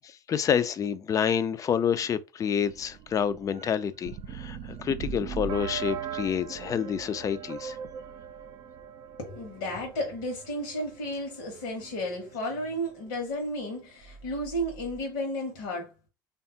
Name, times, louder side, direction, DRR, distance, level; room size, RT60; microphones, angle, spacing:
voice 1, 0.3-7.8, left 8 dB, 30° left, 0.4 m, -28 dB
sound 1, 2.6-12.9 13.2-13.3 13.5-13.6 14.0-15.0, right 7 dB, 50° right, 0.5 m, -41 dB
voice 2, 9.2-15.9, equal, 65° left, 0.9 m, -33 dB
3.4 x 2.3 x 2.7 m
hypercardioid pair, 70°, 11 cm